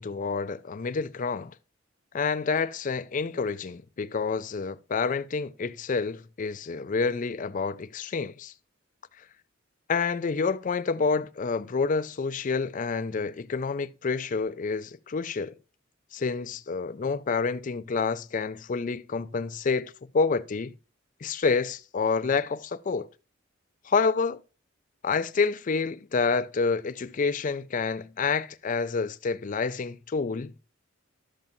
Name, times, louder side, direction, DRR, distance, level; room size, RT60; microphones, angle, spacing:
voice 1, 0.0-1.5 2.1-8.5 9.9-15.5 16.1-20.7 21.2-23.1 23.9-24.4 25.0-30.5, left 4 dB, 40° left, 0.4 m, -28 dB
12.0 x 7.3 x 2.7 m
head